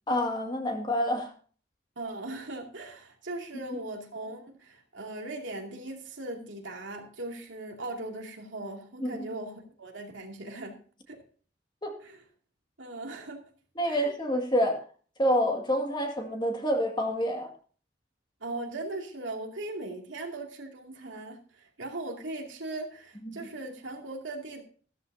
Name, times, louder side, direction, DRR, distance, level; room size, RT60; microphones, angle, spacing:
voice 1, 0.1-1.3 9.0-9.3 11.8-11.9 13.8-14.8 15.2-17.5 23.2-23.4, equal, 25° left, 2 dB, 2.1 m, -27 dB
voice 2, 2.0-10.8 11.1-11.2 12.0-12.2 12.8-13.5 13.9-14.1 18.4-24.6, right 2 dB, 75° right, 2 dB, 2.5 m, -39 dB
15.0 x 13.0 x 2.8 m, 0.42 s
head